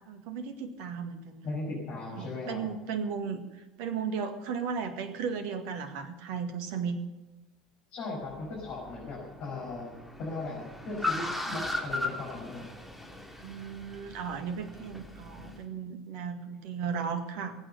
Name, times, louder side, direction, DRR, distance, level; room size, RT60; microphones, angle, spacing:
voice 1, 0.1-1.4 2.1-3.4 3.8-7.0 13.4-17.6, right 6 dB, 55° right, 8 dB, 1.8 m, -35 dB
voice 2, 1.4-2.7 7.9-9.9 10.2-12.7, left 3 dB, 50° left, -4 dB, 5.6 m, -37 dB
Car, 8.2-15.6, left 2 dB, 5° right, 2.9 m, -38 dB
21.0 x 9.1 x 6.9 m, 1.1 s
figure-of-eight pair, 70°, 3 cm